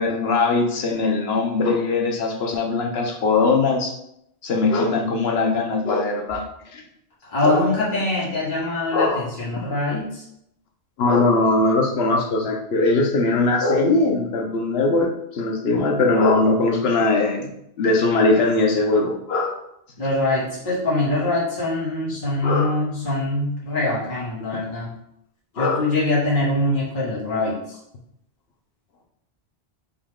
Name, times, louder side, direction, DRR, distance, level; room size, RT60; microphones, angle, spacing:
voice 1, 0.0-3.9 4.4-6.4 6.7-6.8 7.4-7.6 8.9-9.2 11.0-17.5 17.8-19.6 22.4-22.7 25.6-25.9, left 3 dB, 75° left, 2 dB, 1.0 m, -20 dB
voice 2, 7.2-10.2 20.0-24.9 25.6-27.8, left 2 dB, 50° left, -7 dB, 1.6 m, -23 dB
5.5 x 2.3 x 3.5 m, 0.77 s
omnidirectional pair, 1.1 m